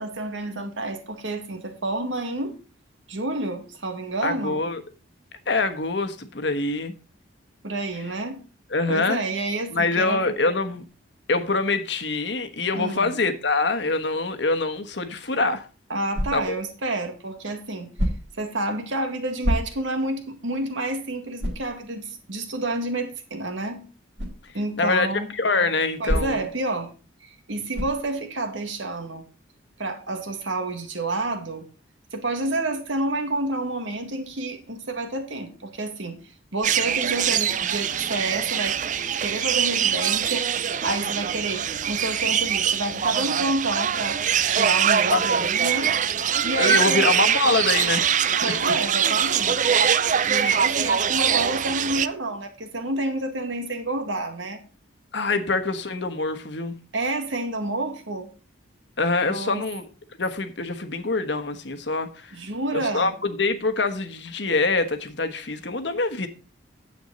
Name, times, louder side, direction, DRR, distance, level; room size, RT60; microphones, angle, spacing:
voice 1, 0.0-2.5 3.1-4.6 7.6-8.4 8.9-10.2 12.7-13.1 15.9-17.9 18.4-23.8 24.5-25.3 26.0-26.9 27.2-29.2 29.8-31.6 32.1-36.2 36.5-40.5 40.8-44.2 44.5-47.1 48.4-49.7 50.3-54.6 56.9-58.3 59.3-59.7 62.3-63.1, right 2 dB, 80° right, 1.9 m, -29 dB
voice 2, 4.2-4.8 5.5-6.9 8.7-9.2 9.7-10.8 11.3-15.7 16.3-16.4 24.8-25.1 25.3-26.4 45.1-45.4 46.6-48.7 50.4-50.7 55.1-56.7 59.0-59.9 60.2-62.4 62.7-66.3, left 3 dB, 65° left, 1.2 m, -25 dB
sound 1, 16.1-16.7 17.9-18.5 19.4-20.0 20.5-20.6 21.4-21.7 24.2-24.4 26.1-26.6 27.7-28.1, equal, 60° right, 2.8 m, -27 dB
sound 2, 36.6-52.1, right 8 dB, 40° right, 0.4 m, -23 dB
9.5 x 8.0 x 4.0 m
head